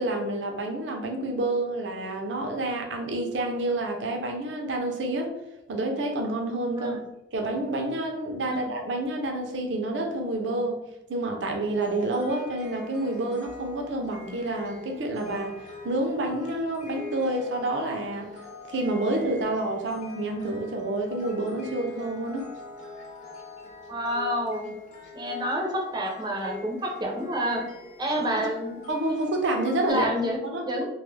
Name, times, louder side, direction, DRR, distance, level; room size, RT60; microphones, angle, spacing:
voice 1, 0.0-5.4 5.7-7.0 7.3-10.8 11.1-18.3 18.7-22.5 28.4-28.5 28.9-30.1 30.4-30.6, right 2 dB, 80° right, 2 dB, 0.5 m, -28 dB
sound 1, 11.6-29.9, left 2 dB, 40° left, 0.6 m, -44 dB
voice 2, 23.9-24.7 25.1-27.6 28.0-28.8 29.9-30.4 30.7-30.9, equal, 25° right, 0 dB, 0.5 m, -28 dB
2.2 x 2.0 x 3.1 m, 0.89 s
head